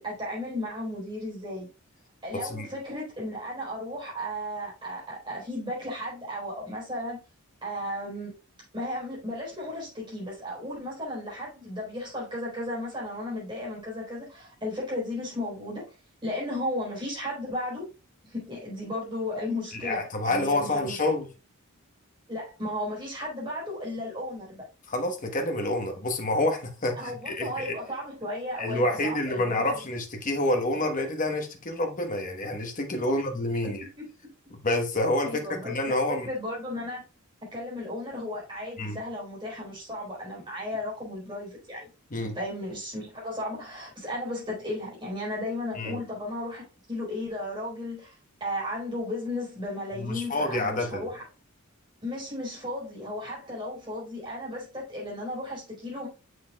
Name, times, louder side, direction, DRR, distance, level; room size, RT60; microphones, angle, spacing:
voice 1, 0.0-1.7 2.2-7.2 7.6-8.3 8.7-15.9 16.2-17.9 18.2-21.0 22.3-24.6 27.0-29.7 33.1-33.2 33.6-34.1 35.2-37.0 37.5-41.9 42.3-48.1 48.4-51.2 52.0-56.1, left 1 dB, 20° right, 4.0 m, -35 dB
voice 2, 19.7-21.3 24.9-27.8 28.6-33.8 34.5-36.3 38.8-39.0 42.1-42.4 45.8-46.0 50.0-51.1, left 1 dB, 35° left, 1.1 m, -28 dB
6.9 x 6.4 x 2.3 m
head